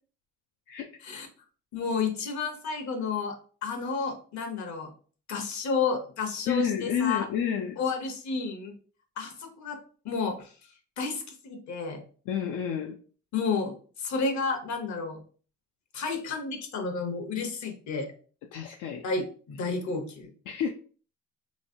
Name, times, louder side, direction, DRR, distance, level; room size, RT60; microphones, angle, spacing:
voice 1, 1.7-3.4 3.6-4.9 5.3-7.3 7.8-8.7 9.2-9.8 10.0-10.5 11.0-12.0 13.3-15.2 15.9-18.1 19.0-20.3, left 4 dB, 70° left, 1.0 m, -31 dB
voice 2, 6.5-7.8 12.3-13.0 18.5-19.0 20.5-20.7, left 8 dB, 85° left, 0.5 m, -29 dB
3.2 x 3.1 x 2.6 m
cardioid pair, 90°, 30 cm